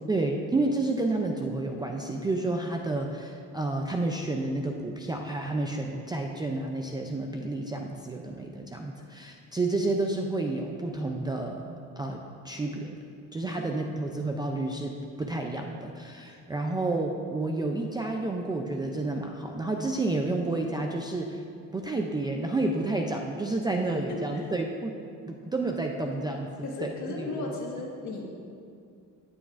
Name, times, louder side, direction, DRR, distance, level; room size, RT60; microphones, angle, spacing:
voice 1, 0.0-13.0 13.3-21.4 21.7-24.9 25.3-26.5 26.8-27.3, right 2 dB, 15° right, 1 dB, 0.3 m, -30 dB
voice 2, 24.1-24.5 26.6-28.4, left 3 dB, 55° left, -1 dB, 1.6 m, -35 dB
11.5 x 9.6 x 2.5 m, 2.4 s
cardioid pair, 145°, 33 cm